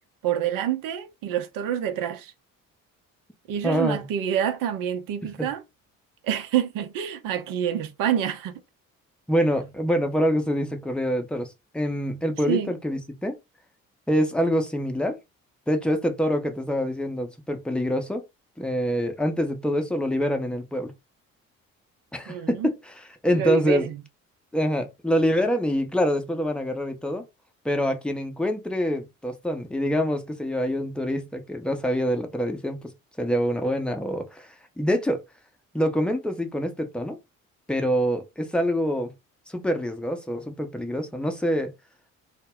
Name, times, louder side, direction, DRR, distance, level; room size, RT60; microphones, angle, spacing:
voice 1, 0.2-2.3 3.5-5.6 6.2-8.6 12.5-12.7 22.3-22.7 23.3-24.0, right 9 dB, 55° right, 0.7 m, -27 dB
voice 2, 3.6-4.1 5.4-5.5 9.3-13.4 14.1-15.2 15.7-18.2 18.6-20.9 22.1-23.9 24.5-27.2 27.6-32.9 33.2-35.2 35.7-37.2 37.7-39.1 39.5-41.7, equal, ahead, 0.7 m, -25 dB
2.1 x 2.0 x 3.5 m
figure-of-eight pair, 50°, 40 cm